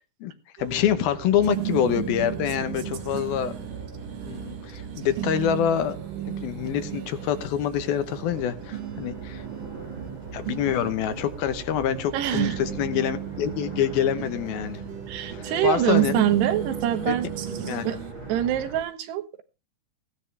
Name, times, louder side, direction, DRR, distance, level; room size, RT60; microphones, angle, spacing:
voice 1, 0.6-3.6 4.2-6.0 6.3-9.4 10.3-14.8 15.3-16.3 17.1-17.2 17.7-17.9, left 9 dB, 70° left, 11 dB, 2.7 m, -26 dB
sound 1, 0.6-18.8, right 3 dB, 40° right, 7.1 m, -40 dB
sound 2, 0.6-18.1, right 10 dB, 65° right, 2.8 m, -36 dB
voice 2, 12.1-12.6 15.1-17.3 17.8-18.0 18.3-19.4, right 11 dB, 80° right, 11 dB, 3.3 m, -24 dB
16.5 x 11.0 x 3.3 m, 0.29 s
omnidirectional pair, 4.7 m